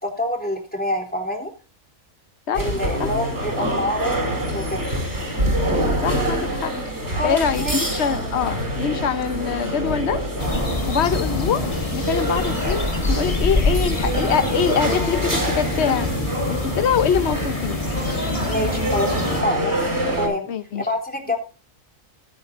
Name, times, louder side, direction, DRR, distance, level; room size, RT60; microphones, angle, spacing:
voice 1, 0.0-1.5 2.6-4.2 4.4-4.8 7.1-8.0 18.5-19.8 20.1-20.5 20.8-21.4, left 1 dB, 5° left, 3.5 m, -26 dB
sound 1, 2.5-20.3, equal, 55° right, 6.1 m, -26 dB
voice 2, 6.0-6.7 7.2-10.2 10.9-11.6 11.9-16.1 16.5-17.8 20.5-20.9 21.3-21.4, left 7 dB, 55° left, 1.2 m, -24 dB
sound 2, 10.4-19.4, left 2 dB, 25° left, 1.4 m, -26 dB
21.0 x 8.8 x 2.7 m
omnidirectional pair, 1.4 m